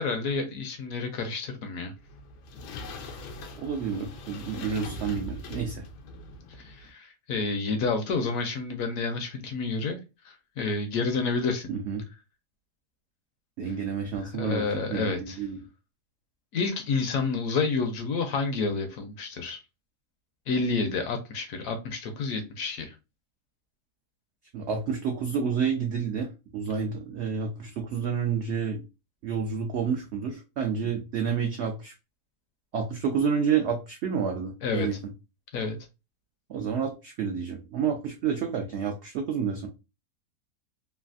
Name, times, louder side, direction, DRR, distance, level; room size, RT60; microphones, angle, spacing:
voice 1, 0.0-1.9 6.5-11.7 14.3-15.4 16.5-19.6 20.5-23.0 34.6-34.9 35.5-35.8, left 4 dB, 70° left, 6 dB, 0.9 m, -29 dB
sound 1, 2.0-6.9, left 1 dB, 85° left, 1.2 m, -41 dB
voice 2, 3.6-5.8 11.7-12.0 13.6-15.6 24.5-28.8 29.2-31.9 32.7-35.0 36.5-39.7, right 6 dB, 85° right, 3 dB, 0.6 m, -29 dB
3.2 x 2.3 x 2.4 m, 0.28 s
omnidirectional pair, 1.7 m